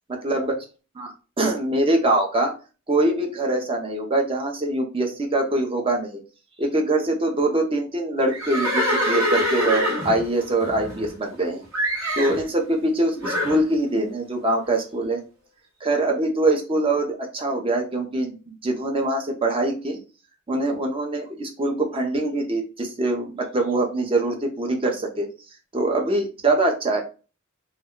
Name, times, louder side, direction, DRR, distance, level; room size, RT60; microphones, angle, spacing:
voice 1, 0.1-0.5 1.0-1.1 1.4-2.5 2.9-6.2 6.6-11.6 12.2-15.2 15.8-20.0 20.5-25.3 25.7-27.0, right 2 dB, 25° right, 2 dB, 0.6 m, -23 dB
Livestock farm animals working animals, 8.3-11.4 11.7-12.4 13.2-13.6, equal, 75° right, 1.0 m, -24 dB
2.2 x 2.2 x 3.6 m, 0.34 s
head